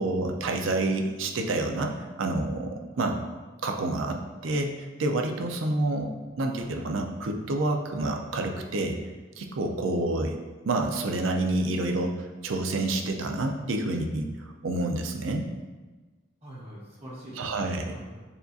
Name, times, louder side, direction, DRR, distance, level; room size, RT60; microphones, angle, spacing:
voice 1, 0.0-1.9 2.2-3.1 3.6-6.1 6.4-9.0 9.4-10.3 10.7-14.3 14.6-15.5 17.4-17.9, right 2 dB, 85° right, 3 dB, 0.5 m, -28 dB
voice 2, 16.4-18.2, equal, 35° right, -7 dB, 1.2 m, -45 dB
6.9 x 2.4 x 2.6 m, 1.3 s
head